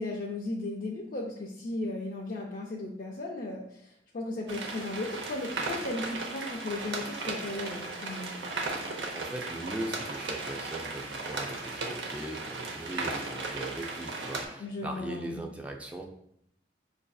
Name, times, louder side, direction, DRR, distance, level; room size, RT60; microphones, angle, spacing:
voice 1, 0.0-8.4 14.6-15.4, left 2 dB, 50° left, -3 dB, 0.4 m, -36 dB
sound 1, 4.5-14.5, right 3 dB, 85° right, 0.7 m, -36 dB
voice 2, 9.0-16.0, right 1 dB, 10° right, 0 dB, 0.4 m, -39 dB
5.9 x 2.6 x 2.3 m, 0.73 s
head